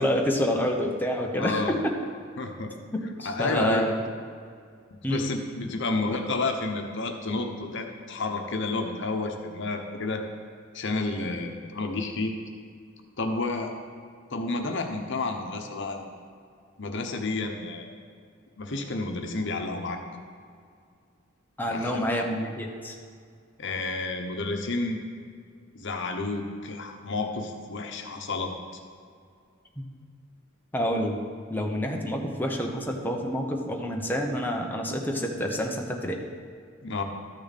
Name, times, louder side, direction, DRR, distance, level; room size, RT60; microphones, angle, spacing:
voice 1, 0.0-2.0 2.9-4.0 5.0-5.2 21.6-22.9 29.8-29.9 30.7-31.2 31.5-36.2, equal, 10° left, 1 dB, 0.9 m, -28 dB
voice 2, 1.4-1.8 2.4-2.7 3.2-4.0 5.1-10.2 10.7-12.4 13.2-13.7 14.3-16.1 16.8-17.9 18.6-20.0 21.7-22.3 23.6-25.0 25.7-28.5 36.8-37.0, left 3 dB, 65° left, 4 dB, 1.0 m, -30 dB
13.0 x 6.6 x 4.2 m, 2.2 s
head